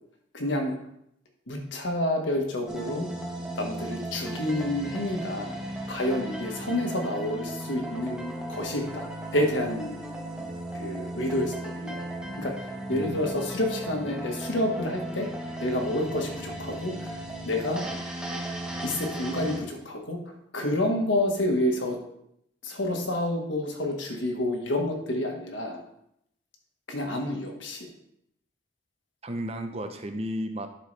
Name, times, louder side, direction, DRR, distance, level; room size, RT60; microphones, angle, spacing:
voice 1, 0.3-0.8 1.5-3.1 3.5-5.5 5.9-10.0 10.7-12.0 12.4-15.3 15.6-17.8 18.8-22.0 22.6-25.8 26.9-27.9, left 1 dB, 75° left, 2 dB, 1.5 m, -29 dB
sound 1, 2.7-19.6, right 1 dB, 5° right, 1.0 m, -36 dB
voice 2, 12.9-13.3 29.2-30.7, equal, 30° right, 6 dB, 0.7 m, -33 dB
11.5 x 4.9 x 3.3 m, 0.76 s
head